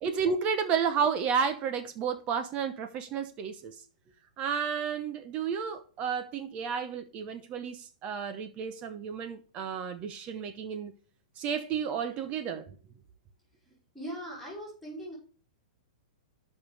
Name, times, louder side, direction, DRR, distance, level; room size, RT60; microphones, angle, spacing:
voice 1, 0.0-3.8 4.4-10.9 11.4-12.7, right 6 dB, 30° right, 0.8 m, -32 dB
voice 2, 13.6-15.1, equal, ahead, 4.3 m, -41 dB
13.5 x 5.4 x 3.4 m
hypercardioid pair, 145°, 4 cm